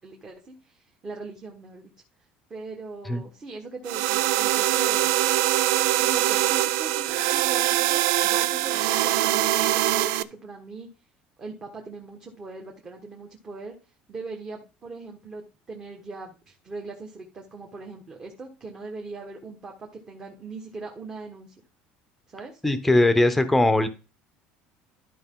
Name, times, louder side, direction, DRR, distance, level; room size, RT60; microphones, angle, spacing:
voice 1, 0.0-1.9 2.5-5.2 6.0-10.9 11.4-21.5 22.3-22.6, right 3 dB, 20° right, 0 dB, 1.3 m, -40 dB
sound 1, 3.9-10.2, right 15 dB, 85° right, 0.5 m, -23 dB
voice 2, 22.6-23.9, left 2 dB, 5° left, 10 dB, 0.9 m, -20 dB
12.5 x 5.0 x 3.8 m, 0.31 s
cardioid pair, 170°, 3 cm